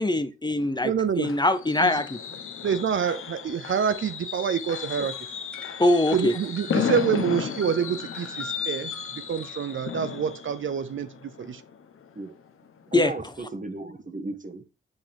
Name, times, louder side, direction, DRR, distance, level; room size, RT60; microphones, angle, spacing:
voice 1, 0.0-2.2 5.8-6.3 12.9-13.1, left 1 dB, 20° left, 0.7 m, -23 dB
Fireworks, 0.6-12.3 12.7-12.9 13.2-13.3, left 7 dB, 85° left, 0.9 m, -34 dB
voice 2, 0.8-1.3 1.8-2.0 2.6-5.1 6.1-11.6, right 7 dB, 70° right, 0.6 m, -27 dB
sound 1, 5.1-9.9, equal, 5° left, 2.3 m, -47 dB
voice 3, 12.9-14.6, right 2 dB, 40° right, 1.4 m, -35 dB
7.7 x 5.3 x 3.5 m
cardioid pair, 70°, 21 cm